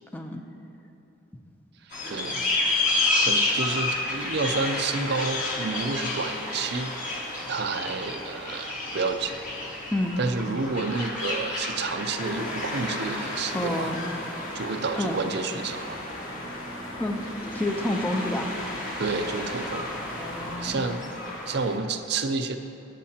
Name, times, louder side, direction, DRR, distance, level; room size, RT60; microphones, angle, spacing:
voice 1, 1.8-2.4 3.1-6.9 7.5-9.4 10.2-14.0 14.5-16.0 19.0-19.9 20.6-21.0 21.5-22.6, right 3 dB, 55° right, 7 dB, 0.5 m, -30 dB
sound 1, 1.9-21.8, left 2 dB, 40° left, 1.9 m, -31 dB
sound 2, 12.2-20.6, left 1 dB, 85° left, 1.2 m, -40 dB
voice 2, 13.5-14.0 15.0-15.2 16.9-17.3 17.5-18.5 20.2-20.8, left 1 dB, 10° left, 3 dB, 0.6 m, -29 dB
20.5 x 7.5 x 2.9 m, 2.7 s
head